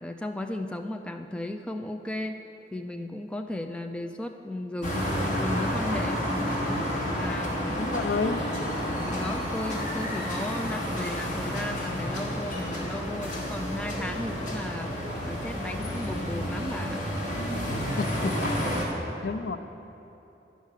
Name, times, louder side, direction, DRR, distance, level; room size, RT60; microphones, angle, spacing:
voice 1, 0.0-2.4 2.7-6.2 7.0-7.8 8.9-14.9 15.2-17.0, left 1 dB, 5° left, 4 dB, 0.3 m, -35 dB
sound 1, 4.8-18.9, equal, 45° left, 1.8 m, -30 dB
voice 2, 7.7-8.4 18.0-18.4 19.2-19.6, left 4 dB, 70° left, 9 dB, 0.4 m, -30 dB
10.0 x 6.4 x 6.6 m, 3.0 s
head